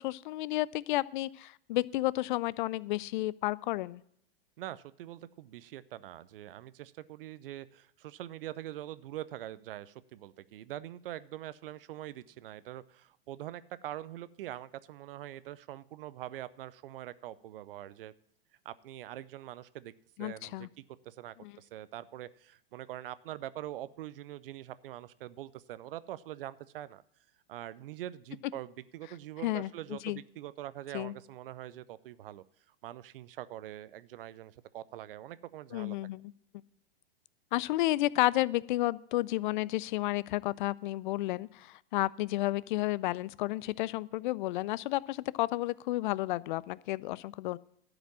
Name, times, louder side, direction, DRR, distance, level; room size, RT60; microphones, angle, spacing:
voice 1, 0.0-4.0 20.2-20.7 21.4-21.5 29.4-29.7 30.0-30.2 30.9-31.1 35.7-36.3 37.5-47.6, left 17 dB, 55° left, 21 dB, 0.5 m, -31 dB
voice 2, 4.6-18.1 18.6-19.9 20.2-27.0 27.5-32.4 32.8-36.0, right 13 dB, 65° right, 16 dB, 0.7 m, -44 dB
12.0 x 5.1 x 8.5 m, 0.71 s
hypercardioid pair, 110°, 30 cm